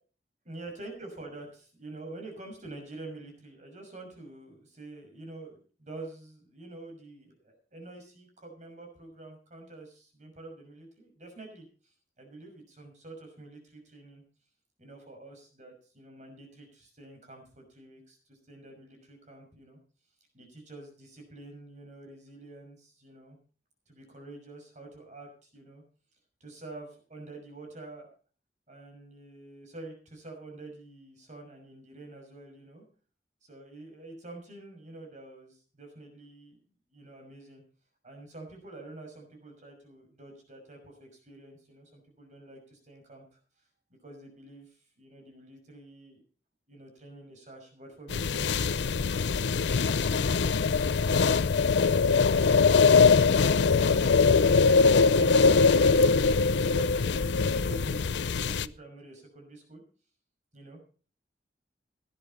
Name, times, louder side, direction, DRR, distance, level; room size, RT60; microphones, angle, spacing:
voice 1, 0.4-14.2 14.8-19.8 20.3-23.4 23.9-25.8 26.4-28.1 28.7-32.8 33.4-37.6 38.0-43.4 44.0-46.2 46.7-48.9 49.6-59.8 60.5-60.8, right 2 dB, 45° right, 3 dB, 6.0 m, -47 dB
sound 1, 48.1-58.7, left 4 dB, 80° left, 0.6 m, -22 dB
18.0 x 11.0 x 4.3 m, 0.39 s
head